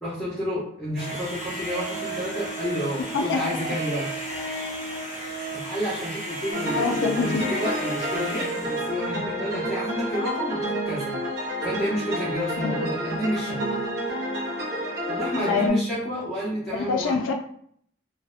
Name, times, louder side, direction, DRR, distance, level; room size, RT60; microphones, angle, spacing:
voice 1, 0.0-4.1 5.5-11.1 11.4-13.8 15.1-17.2, equal, 5° left, -12 dB, 0.7 m, -30 dB
sound 1, 0.9-8.9, right 2 dB, 35° right, 1.0 m, -33 dB
sound 2, 6.5-15.7, equal, 55° right, 0.6 m, -29 dB
voice 2, 6.7-7.4 12.6-12.8 15.5-15.8 16.7-17.3, left 4 dB, 75° left, 3 dB, 0.3 m, -25 dB
2.5 x 2.1 x 2.4 m, 0.64 s
head